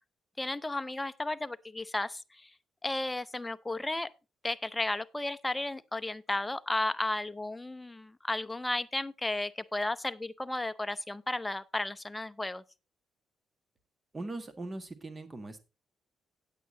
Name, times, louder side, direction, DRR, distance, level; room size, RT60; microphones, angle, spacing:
voice 1, 0.4-2.5 2.8-4.1 4.4-12.6, left 2 dB, 10° left, 0.6 m, -34 dB
voice 2, 14.1-15.6, right 2 dB, 25° right, 1.7 m, -40 dB
9.2 x 8.4 x 3.9 m
cardioid pair, 90°, 0 cm